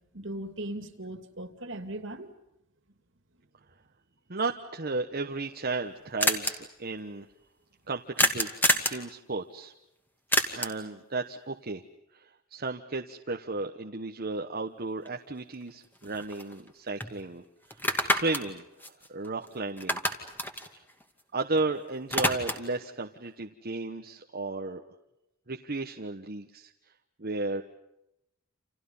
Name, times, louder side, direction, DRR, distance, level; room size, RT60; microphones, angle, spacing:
voice 1, 0.1-2.3, right 1 dB, 60° right, 8 dB, 2.6 m, -38 dB
voice 2, 4.3-7.2 7.9-9.7 10.5-11.8 12.1-12.2 12.5-17.4 17.7-17.8 18.1-20.0 21.3-24.8 25.5-26.7 27.2-27.6, right 3 dB, 45° right, 3 dB, 1.2 m, -34 dB
sound 1, 5.3-5.4 5.5-5.6 5.8-5.9 6.2-6.5 8.2-9.0 10.3-10.9 15.1-15.2 15.5-16.7 17.0-17.1 17.7-19.5 19.8-21.6 21.9-22.8, left 1 dB, 10° left, 2.4 m, -28 dB
30.0 x 28.5 x 5.6 m, 0.85 s
head